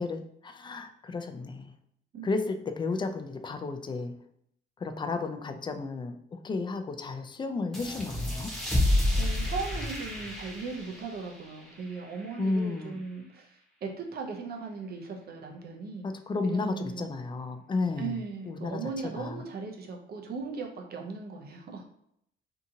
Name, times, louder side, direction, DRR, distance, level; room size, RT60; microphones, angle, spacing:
voice 1, 0.0-1.7 2.2-4.2 4.8-8.5 12.4-13.0 16.0-18.2 18.5-18.8 19.2-19.3, left 3 dB, 25° left, 7 dB, 0.3 m, -33 dB
sound 1, 7.7-13.0, left 1 dB, ahead, 0.9 m, -31 dB
voice 2, 9.2-16.1 16.4-17.1 18.0-21.9, right 4 dB, 55° right, 2 dB, 0.6 m, -38 dB
2.7 x 2.4 x 2.7 m, 0.73 s
cardioid pair, 90°, 20 cm